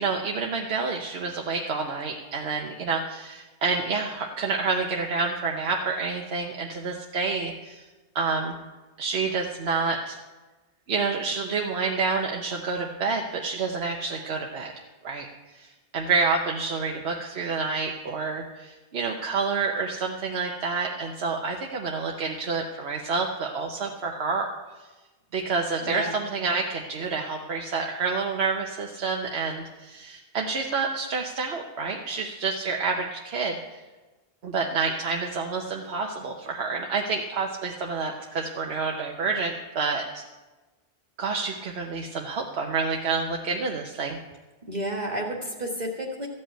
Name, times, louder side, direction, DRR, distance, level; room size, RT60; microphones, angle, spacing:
voice 1, 0.0-7.8 8.1-8.5 9.0-10.2 10.9-14.7 15.0-15.3 15.5-24.5 25.3-33.6 34.4-40.2 41.2-44.2, right 4 dB, 90° right, 2 dB, 1.1 m, -28 dB
voice 2, 44.7-46.3, equal, 45° right, -2 dB, 1.6 m, -31 dB
14.0 x 5.5 x 8.8 m, 1.2 s
omnidirectional pair, 1.0 m